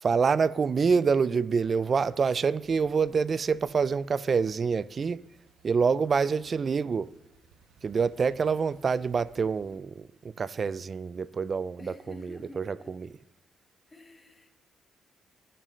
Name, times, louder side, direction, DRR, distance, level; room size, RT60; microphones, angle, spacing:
voice 1, 0.0-5.3 5.6-7.1 7.8-11.9 12.2-13.1, right 5 dB, 45° right, 0.3 m, -26 dB
sound 1, 1.6-9.8, right 4 dB, 85° right, 1.1 m, -60 dB
voice 2, 8.2-8.6 11.8-12.9 13.9-14.6, left 2 dB, 25° left, 1.3 m, -50 dB
15.5 x 6.7 x 3.2 m
supercardioid pair, 70°, 0 cm